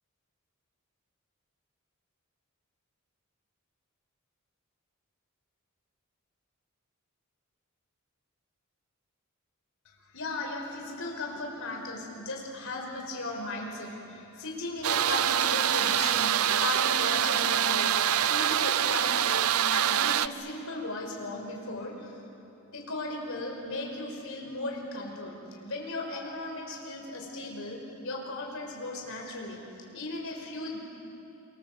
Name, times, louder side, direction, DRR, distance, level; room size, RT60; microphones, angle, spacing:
voice 1, 9.9-22.2 22.7-29.6 29.9-30.8, left 2 dB, 65° left, 1 dB, 5.3 m, -36 dB
sound 1, 14.8-20.3, right 10 dB, 80° right, 0.6 m, -25 dB
27.5 x 26.0 x 7.9 m, 2.9 s
head